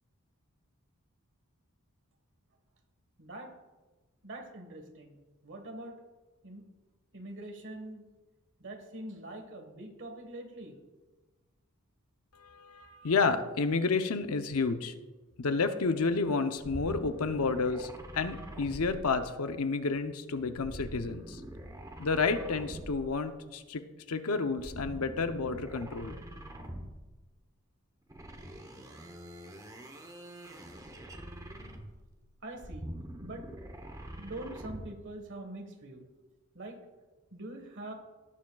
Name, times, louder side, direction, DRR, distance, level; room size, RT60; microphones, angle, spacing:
voice 1, 3.2-3.5 4.2-5.2 5.4-6.0 6.4-6.6 7.1-8.1 8.6-10.7 12.8-13.2 32.4-32.9 33.2-33.4 34.2-36.0 36.5-36.8 37.3-37.9, right 1 dB, 55° right, 4 dB, 1.5 m, -44 dB
voice 2, 12.3-14.9 15.4-21.4 22.0-26.2, left 4 dB, 70° left, 8 dB, 0.7 m, -30 dB
sound 1, 16.6-19.6 20.6-23.3 24.5-27.1 28.1-32.1 32.5-35.0, right 1 dB, 15° right, 0.9 m, -44 dB
18.0 x 7.4 x 2.3 m, 1.2 s
head